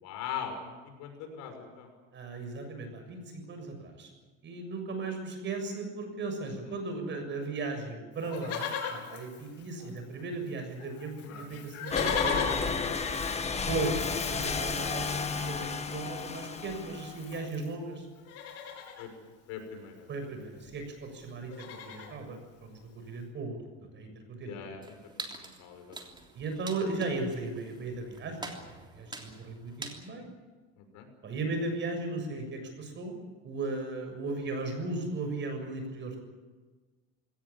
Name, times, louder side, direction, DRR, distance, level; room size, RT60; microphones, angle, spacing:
voice 1, 0.0-0.7 1.0-1.9 19.0-19.1 19.5-20.0 24.4-24.8 25.4-26.0 30.9-31.1, left 8 dB, 70° left, 5 dB, 6.1 m, -40 dB
voice 2, 2.1-4.1 4.4-13.0 13.7-18.1 20.1-23.6 23.9-24.8 26.3-28.6 28.9-30.3 31.2-33.2 33.4-36.2, right 3 dB, 40° right, 6 dB, 6.9 m, -36 dB
Livestock farm animals working animals, 8.2-10.2 10.5-10.6 10.8-17.7 18.2-19.1 20.3-20.4 20.6-20.9 21.2-22.2 22.8-22.9, left 7 dB, 50° left, 4.8 m, -39 dB
sound 1, 11.9-17.4, left 5 dB, 20° left, 1.9 m, -32 dB
sound 2, 24.8-30.1, right 3 dB, 15° right, 3.3 m, -45 dB
21.5 x 18.0 x 9.9 m, 1.3 s
cardioid pair, 130°, 30 cm